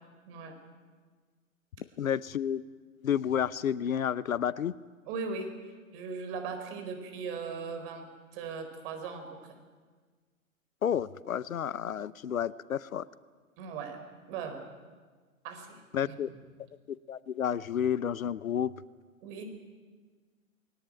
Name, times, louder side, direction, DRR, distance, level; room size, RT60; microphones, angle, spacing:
voice 1, 0.3-0.6 5.1-5.5 5.9-9.6 13.6-14.0 14.3-14.6 15.4-16.3 19.2-19.4, right 5 dB, 45° right, 6 dB, 4.4 m, -39 dB
voice 2, 2.0-2.6 3.0-4.7 10.8-13.1 15.9-16.3 16.9-18.7, left 9 dB, 70° left, 19 dB, 0.8 m, -30 dB
21.0 x 18.5 x 9.2 m, 1.5 s
figure-of-eight pair, 105°, 42 cm